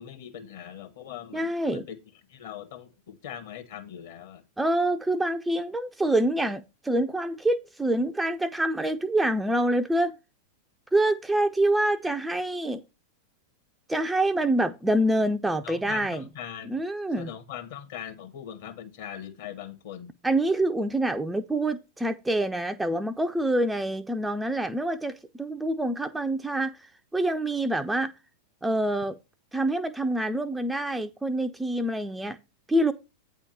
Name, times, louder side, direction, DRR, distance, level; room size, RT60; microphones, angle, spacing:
voice 1, 0.0-2.0 2.3-4.4 15.6-16.8 17.2-20.1, left 9 dB, 55° left, 1.5 m, -41 dB
voice 2, 1.3-1.9 4.6-10.1 10.9-12.8 13.9-16.3 16.6-17.3 20.2-28.1 28.6-29.2 29.5-32.4 32.7-32.9, right 1 dB, 5° right, 0.5 m, -26 dB
8.9 x 3.6 x 6.9 m
figure-of-eight pair, 90°, 0 cm